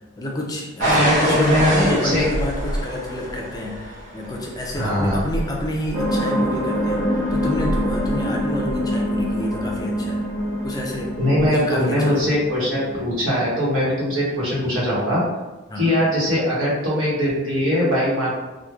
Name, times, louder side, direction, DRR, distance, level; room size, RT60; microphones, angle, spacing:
voice 1, 0.2-10.2 10.6-12.3 15.7-16.0, left 1 dB, 20° left, -2 dB, 0.3 m, -28 dB
sound 1, 0.8-9.6 10.4-10.8 11.4-11.5, equal, 40° right, 0.5 m, -27 dB
voice 2, 0.8-2.3 4.7-5.2 11.2-15.2 15.8-18.3, left 1 dB, 90° right, -6 dB, 1.0 m, -21 dB
sound 2, 5.9-13.0, equal, 10° right, 1.2 m, -25 dB
3.0 x 2.1 x 2.3 m, 1.1 s
head